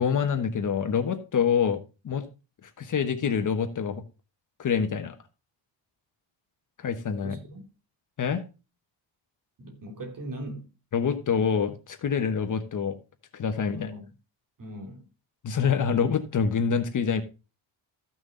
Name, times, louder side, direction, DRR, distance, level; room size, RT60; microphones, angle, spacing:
voice 1, 0.0-1.8 2.0-2.3 2.8-4.0 4.6-5.1 6.8-7.4 8.2-8.4 10.9-13.0 13.3-13.9 15.4-17.2, left 6 dB, 40° left, 1.2 m, -26 dB
voice 2, 7.2-7.6 9.6-10.7 13.7-14.1 14.6-15.0, right 1 dB, 40° right, 3.0 m, -39 dB
14.5 x 6.2 x 3.8 m
cardioid pair, 145°, 47 cm